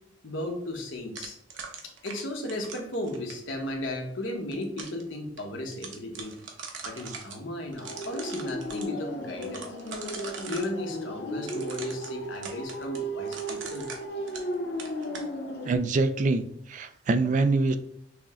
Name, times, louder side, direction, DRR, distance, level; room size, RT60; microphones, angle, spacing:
voice 1, 0.2-1.3 1.8-6.4 6.8-9.6 10.4-13.9, left 1 dB, 90° left, 2 dB, 1.0 m, -35 dB
sound 1, 1.2-3.5 4.3-5.0 5.4-5.5 5.7-7.4 7.7-8.9 9.4-10.7 11.4-14.5 14.8-15.3, right 5 dB, 85° right, 0.9 m, -41 dB
sound 2, 7.8-15.8, equal, 55° left, 0.7 m, -35 dB
voice 2, 15.7-16.4 16.7-17.8, right 3 dB, 40° right, 11 dB, 0.3 m, -24 dB
6.1 x 2.1 x 3.5 m, 0.68 s
head